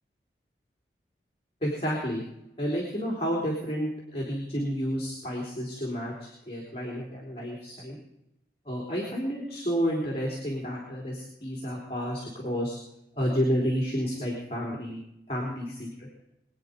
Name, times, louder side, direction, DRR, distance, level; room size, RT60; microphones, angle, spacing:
voice 1, 1.6-2.2 2.6-8.0 8.6-12.8 13.2-15.0 15.3-16.1, equal, 35° left, -3 dB, 3.7 m, -30 dB
23.0 x 9.5 x 5.3 m, 0.83 s
head